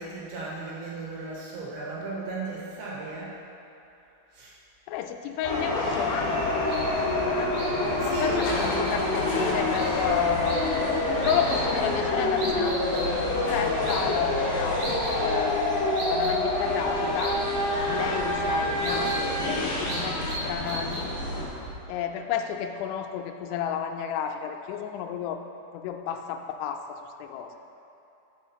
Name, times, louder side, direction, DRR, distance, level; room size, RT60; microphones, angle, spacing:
voice 1, 0.0-3.3 4.3-4.5 8.0-8.8 9.8-10.1 10.4-10.5 17.8-18.1, right 3 dB, 80° right, -5 dB, 3.8 m, -36 dB
voice 2, 4.9-7.6 7.9-10.6 11.2-14.8 15.2-17.4 17.9-21.1 21.9-25.4 25.7-27.6, left 8 dB, 85° left, 5 dB, 2.8 m, -32 dB
sound 1, 5.4-21.4, left 1 dB, 45° left, 1.7 m, -27 dB
sound 2, 6.7-21.8, equal, 65° right, 3.1 m, -37 dB
sound 3, 8.4-11.7 13.1-13.2, left 1 dB, 65° left, 2.5 m, -38 dB
6.2 x 5.8 x 5.6 m, 2.9 s
omnidirectional pair, 5.5 m